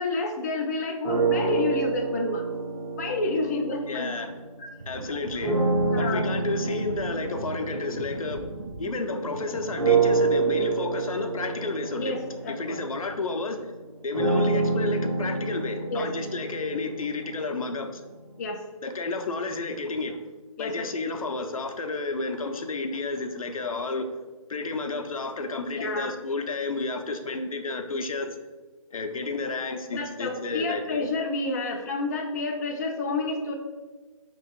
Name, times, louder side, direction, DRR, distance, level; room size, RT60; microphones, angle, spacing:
voice 1, 0.0-2.4 3.0-4.1 4.6-4.7 5.9-6.2 12.0-12.8 15.9-16.1 18.4-18.6 20.6-20.9 25.7-26.1 29.9-33.5, left 3 dB, 30° left, 2 dB, 0.4 m, -29 dB
sound 1, 1.0-4.6 5.4-9.2 9.8-17.7, right 3 dB, 70° right, 1.5 m, -28 dB
voice 2, 3.9-4.3 4.9-5.6 6.0-8.5 8.8-12.1 12.5-13.6 14.0-18.0 18.8-20.2 20.6-24.1 24.5-28.4 28.9-31.0, left 3 dB, 75° left, 6 dB, 0.6 m, -31 dB
sound 2, 4.8-9.8, right 4 dB, 50° right, 0.4 m, -39 dB
3.4 x 3.0 x 4.5 m, 1.2 s
figure-of-eight pair, 150°, 18 cm